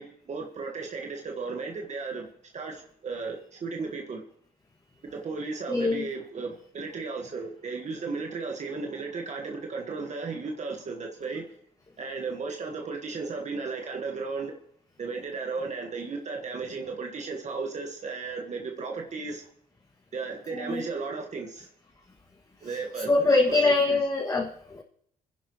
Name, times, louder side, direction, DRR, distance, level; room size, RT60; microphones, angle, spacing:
voice 1, 0.0-2.3 2.5-4.2 5.0-11.4 12.0-14.5 15.0-19.4 20.1-21.7 22.6-24.0, right 4 dB, 50° right, 2 dB, 1.6 m, -35 dB
voice 2, 5.7-6.0 20.5-20.8 23.1-24.8, left 3 dB, 25° left, -3 dB, 2.0 m, -23 dB
29.0 x 10.5 x 3.1 m, 0.70 s
supercardioid pair, 70°, 15 cm